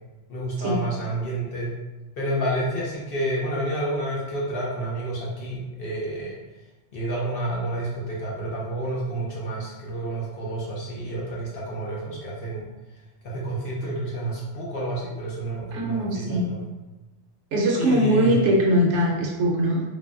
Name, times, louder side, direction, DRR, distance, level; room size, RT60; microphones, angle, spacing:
voice 1, 0.3-1.7 2.2-6.4 6.9-12.7 13.2-16.6 17.8-18.4, right 1 dB, 55° left, -5 dB, 0.7 m, -29 dB
voice 2, 15.7-16.5 17.5-19.8, equal, 70° right, -2 dB, 0.9 m, -21 dB
3.3 x 2.1 x 2.4 m, 1.2 s
omnidirectional pair, 1.3 m